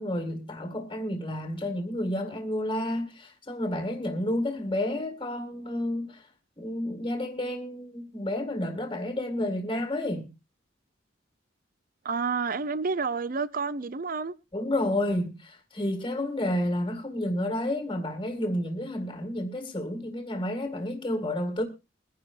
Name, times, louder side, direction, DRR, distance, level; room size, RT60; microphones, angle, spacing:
voice 1, 0.0-6.3 6.6-10.3 14.5-21.6, left 1 dB, 25° left, 2.0 m, -30 dB
voice 2, 12.0-14.3, right 4 dB, 45° right, 0.6 m, -29 dB
23.0 x 10.5 x 2.5 m
head